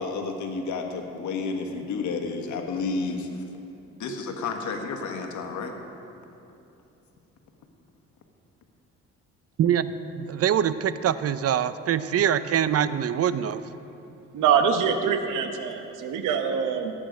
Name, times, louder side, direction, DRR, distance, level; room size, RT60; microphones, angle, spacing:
voice 1, 0.0-3.3 4.0-5.7, left 4 dB, 75° left, 4 dB, 1.5 m, -31 dB
voice 2, 9.6-13.7, right 9 dB, 55° right, 14 dB, 0.5 m, -24 dB
voice 3, 14.3-16.9, right 7 dB, 85° right, 7 dB, 1.0 m, -24 dB
16.0 x 8.8 x 5.2 m, 2.8 s
cardioid pair, 90°, 30 cm